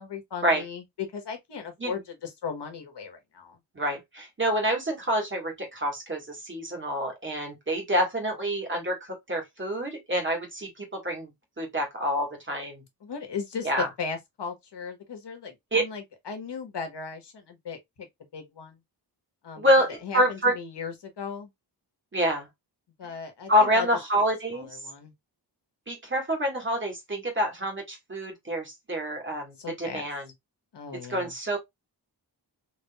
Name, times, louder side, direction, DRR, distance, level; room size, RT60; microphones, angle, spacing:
voice 1, 0.0-3.6 13.0-18.1 18.3-18.8 19.4-19.6 20.0-21.5 23.0-23.9 24.5-25.1 29.6-30.0 30.7-31.3, left 5 dB, 75° left, 1.2 m, -37 dB
voice 2, 3.7-11.3 11.6-12.8 13.6-13.9 15.7-15.8 19.6-20.5 22.1-22.5 23.5-24.7 25.9-30.2 31.1-31.6, equal, 30° right, 1.6 m, -27 dB
3.7 x 2.9 x 2.2 m
wide cardioid pair, 145°, 42 cm